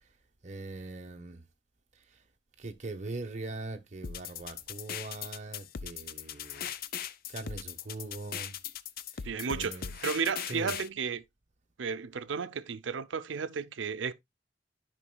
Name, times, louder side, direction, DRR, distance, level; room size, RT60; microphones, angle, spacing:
voice 1, 0.4-1.4 2.6-6.7 7.3-8.5 9.1-9.9 10.5-10.7, right 2 dB, 40° right, 1.1 m, -41 dB
sound 1, 4.0-10.9, left 8 dB, 55° left, 0.5 m, -39 dB
voice 2, 9.2-11.2 11.8-14.1, right 5 dB, 80° right, 0.6 m, -33 dB
13.0 x 5.3 x 2.3 m
head